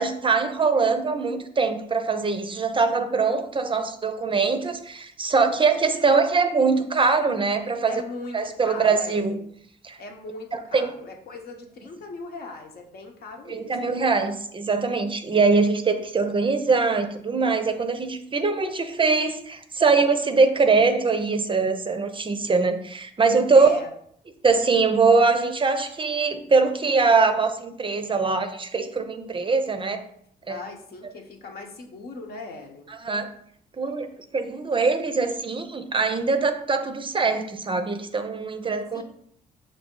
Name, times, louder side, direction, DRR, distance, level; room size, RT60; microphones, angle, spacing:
voice 1, 0.0-8.0 8.3-9.4 9.8-10.0 10.7-10.9 13.5-23.8 24.4-30.0 30.5-30.6 33.0-33.3 33.8-39.0, right 4 dB, 30° right, 8 dB, 0.5 m, -22 dB
voice 2, 7.9-9.5 10.0-13.9 23.5-23.9 30.4-32.9 38.9-39.0, left 3 dB, 65° left, 3 dB, 0.9 m, -39 dB
5.2 x 2.7 x 3.7 m, 0.66 s
cardioid pair, 80°, 18 cm